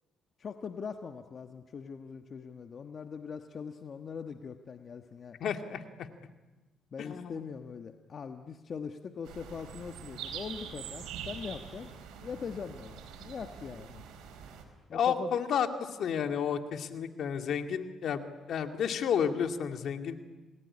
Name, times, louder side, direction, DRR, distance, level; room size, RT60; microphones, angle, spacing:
voice 1, 0.4-5.4 6.9-11.9 12.2-14.0 14.9-15.4, left 6 dB, 50° left, 6 dB, 1.3 m, -41 dB
voice 2, 5.4-6.1 7.0-7.4 14.9-20.1, left 7 dB, 70° left, 6 dB, 2.2 m, -31 dB
sound 1, 9.2-14.6, right 8 dB, 90° right, 4.6 m, -44 dB
29.0 x 20.0 x 9.8 m, 1.2 s
cardioid pair, 90°, 0 cm